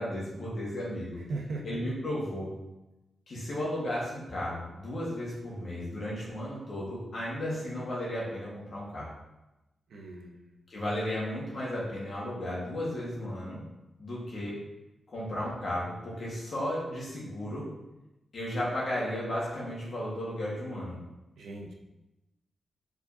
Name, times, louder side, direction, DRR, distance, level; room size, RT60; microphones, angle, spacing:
voice 1, 0.0-1.2 1.6-2.5 3.3-9.1 10.7-13.6 14.0-14.6 15.1-17.7 18.3-21.0, left 1 dB, 45° left, -6 dB, 1.5 m, -34 dB
voice 2, 1.3-1.9 9.9-10.6 21.4-21.7, right 2 dB, 85° right, 1 dB, 0.7 m, -38 dB
4.8 x 3.9 x 2.7 m, 0.98 s
wide cardioid pair, 175°, 0 cm